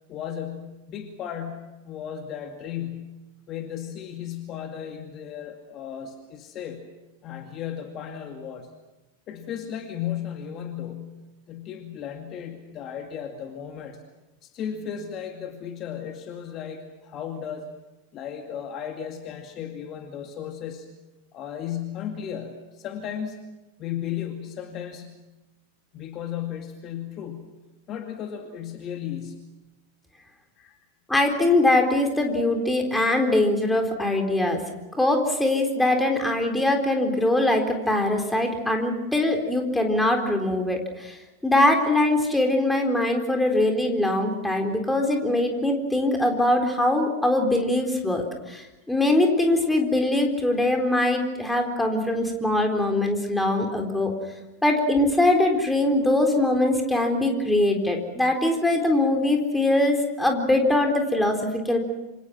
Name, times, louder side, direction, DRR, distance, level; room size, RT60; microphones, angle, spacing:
voice 1, 0.1-3.1 3.5-6.9 7.2-8.7 9.3-14.0 14.4-17.7 18.1-20.9 21.3-23.4 23.8-25.2 25.9-27.5 27.9-29.4 30.6-30.8, left 9 dB, 35° left, 5 dB, 2.2 m, -35 dB
voice 2, 31.1-34.6 34.9-54.1 54.6-61.8, left 1 dB, 5° left, 3 dB, 4.0 m, -22 dB
27.5 x 26.5 x 6.1 m, 1.1 s
figure-of-eight pair, 90°, 0 cm